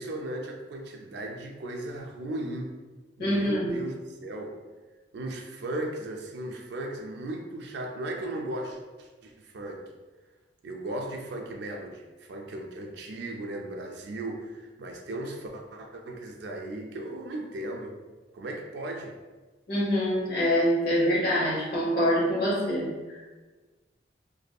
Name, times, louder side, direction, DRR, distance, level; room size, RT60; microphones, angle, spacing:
voice 1, 0.0-2.7 3.2-4.5 5.1-9.8 10.6-17.9 18.3-19.1, right 1 dB, 65° right, 2 dB, 0.4 m, -36 dB
voice 2, 3.2-3.7 19.7-23.2, equal, 55° left, -6 dB, 0.9 m, -25 dB
2.6 x 2.6 x 2.2 m, 1.3 s
head